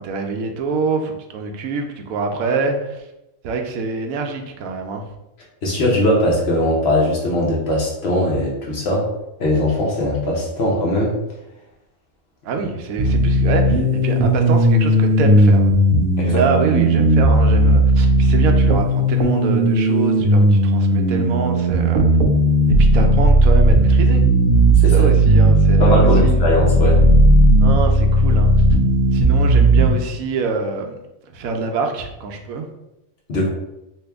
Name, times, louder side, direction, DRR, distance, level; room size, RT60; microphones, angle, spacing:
voice 1, 0.0-3.0 3.4-5.0 12.4-15.7 16.3-22.1 22.8-24.2 24.9-26.5 27.6-28.5 29.1-31.0 31.3-32.7, right 4 dB, 90° right, 3 dB, 1.0 m, -25 dB
voice 2, 5.6-9.1 9.4-11.2 16.2-16.4 24.8-25.1 25.8-27.0 33.3-33.5, left 1 dB, 55° left, -3 dB, 1.0 m, -20 dB
sound 1, 13.0-29.9, right 1 dB, 65° right, 0.5 m, -15 dB
3.0 x 2.7 x 3.4 m, 0.92 s
omnidirectional pair, 1.4 m